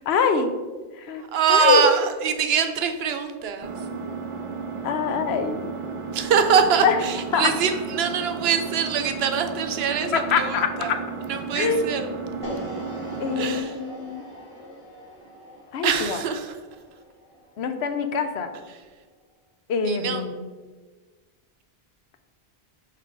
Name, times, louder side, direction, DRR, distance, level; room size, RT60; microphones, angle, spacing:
voice 1, 0.1-0.5 1.0-1.2 1.5-1.9 4.8-5.7 6.8-7.0 7.3-7.5 10.1-11.0 11.5-11.8 13.2-14.2 15.7-16.2 17.6-18.5 19.7-20.4, left 6 dB, 85° left, 8 dB, 0.9 m, -24 dB
voice 2, 1.2-3.7 6.1-11.0 11.3-12.1 13.4-13.8 15.8-16.5 18.7-18.8 19.8-20.3, right 6 dB, 75° right, 7 dB, 0.8 m, -23 dB
Engine, 3.6-13.6, right 5 dB, 40° right, 0.5 m, -34 dB
sound 1, 12.4-18.6, equal, 30° left, 1.1 m, -41 dB
5.7 x 3.8 x 4.9 m, 1.4 s
omnidirectional pair, 1.1 m